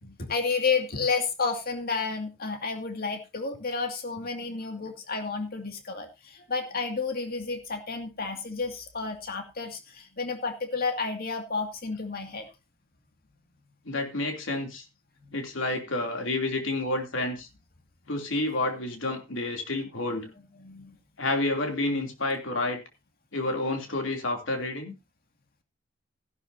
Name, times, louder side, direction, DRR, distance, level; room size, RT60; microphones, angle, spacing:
voice 1, 0.0-12.5 20.6-21.0, left 4 dB, 50° left, 4 dB, 2.3 m, -31 dB
voice 2, 13.8-14.8 15.3-17.5 18.1-20.3 21.2-22.8 23.3-24.9, left 2 dB, 70° left, 3 dB, 3.1 m, -29 dB
14.5 x 11.5 x 2.8 m, 0.26 s
head